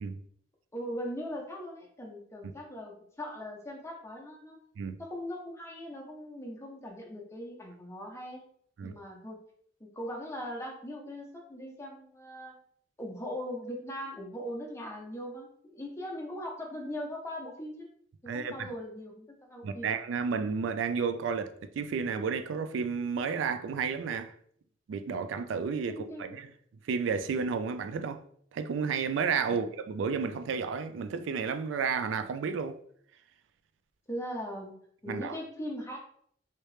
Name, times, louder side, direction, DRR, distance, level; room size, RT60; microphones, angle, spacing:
voice 1, 0.7-4.6 5.0-8.4 8.8-9.4 9.8-12.5 13.0-17.9 18.2-19.9 25.9-26.4 29.5-29.6 34.1-34.8 35.0-36.0, equal, 15° left, 0.7 m, -40 dB
voice 2, 18.3-18.7 19.6-24.3 24.9-26.5 26.8-28.2 28.5-32.8 35.1-35.4, right 5 dB, 85° right, 0.3 m, -32 dB
3.2 x 2.8 x 3.1 m
head